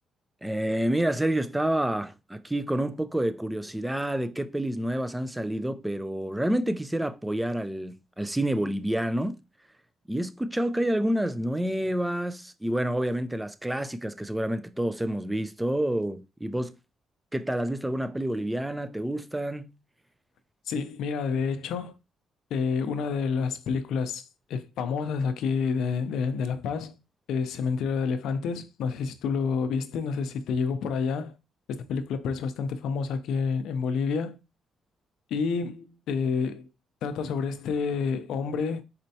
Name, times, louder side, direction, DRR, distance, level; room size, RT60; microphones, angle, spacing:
voice 1, 0.4-9.4 10.1-16.7 17.3-19.7, right 1 dB, 10° right, 0.5 m, -28 dB
voice 2, 20.7-21.9 22.5-24.2 24.5-27.0 27.3-31.4 31.7-34.4 35.3-36.7 37.0-38.8, left 5 dB, 80° left, 0.6 m, -29 dB
4.3 x 4.2 x 2.8 m
cardioid pair, 90°, 0 cm